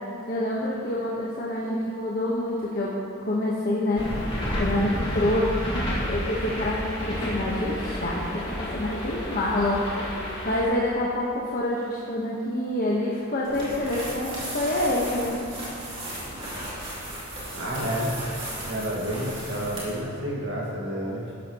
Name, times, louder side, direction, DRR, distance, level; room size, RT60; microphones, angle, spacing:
voice 1, 0.3-2.9 3.2-4.1 4.5-5.5 6.0-9.9 10.4-15.4, left 1 dB, 40° left, -5 dB, 1.2 m, -27 dB
sound 1, 4.0-10.6, equal, 20° left, 2.2 m, -30 dB
sound 2, 13.4-20.1, right 1 dB, 25° right, 3.0 m, -36 dB
voice 2, 17.5-18.1 18.6-21.3, equal, 55° right, -4 dB, 1.9 m, -30 dB
14.0 x 12.0 x 3.0 m, 2.8 s
head